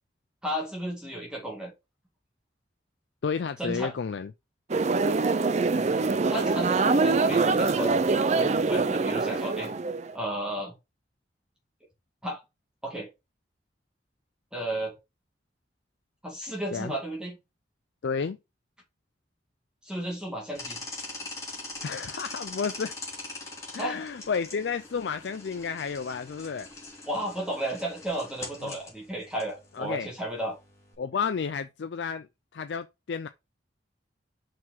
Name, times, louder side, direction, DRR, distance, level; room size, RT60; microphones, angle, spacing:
voice 1, 0.4-1.7 3.6-3.9 5.7-8.0 8.4-9.7 10.1-10.7 12.2-12.4 12.8-13.1 14.5-14.9 16.2-17.4 19.8-20.8 23.8-24.0 27.1-30.6, right 1 dB, 5° right, 2.1 m, -33 dB
voice 2, 3.2-4.3 16.7-16.9 18.0-18.4 21.8-22.9 23.7-26.7 28.6-28.7 29.7-30.1 31.0-32.3 32.5-33.3, left 6 dB, 75° left, 0.4 m, -31 dB
sound 1, 4.7-10.1, right 3 dB, 40° right, 0.5 m, -24 dB
sound 2, 20.5-30.9, left 3 dB, 15° left, 2.7 m, -42 dB
5.8 x 5.0 x 3.7 m
head